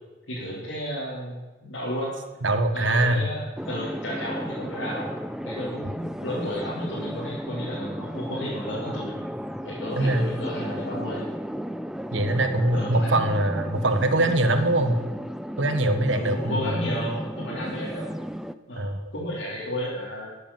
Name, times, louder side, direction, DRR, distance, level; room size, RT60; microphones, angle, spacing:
voice 1, 0.3-2.1 2.7-5.1 5.4-9.2 9.6-11.3 12.7-13.1 16.1-18.1 18.7-20.3, equal, 80° left, -8 dB, 3.7 m, -32 dB
voice 2, 2.4-3.3 10.0-10.3 12.1-15.0 15.6-16.7 18.8-19.1, right 1 dB, 85° right, 8 dB, 1.4 m, -23 dB
sound 1, 3.6-18.5, equal, 5° right, 0.4 m, -34 dB
13.0 x 8.4 x 7.2 m, 1.2 s
head